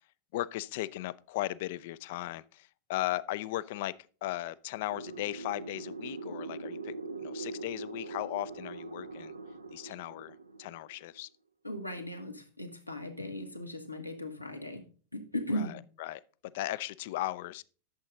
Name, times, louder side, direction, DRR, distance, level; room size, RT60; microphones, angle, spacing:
voice 1, 0.3-3.9 4.2-6.9 7.2-9.3 9.7-11.3 15.5-16.2 16.5-17.6, left 15 dB, 50° left, 0.4 m, -37 dB
sound 1, 4.9-11.1, right 3 dB, 80° right, 0.7 m, -42 dB
voice 2, 11.6-14.8 15.1-15.8, left 1 dB, 90° left, 1.5 m, -37 dB
11.5 x 7.3 x 3.8 m
figure-of-eight pair, 90°, 0 cm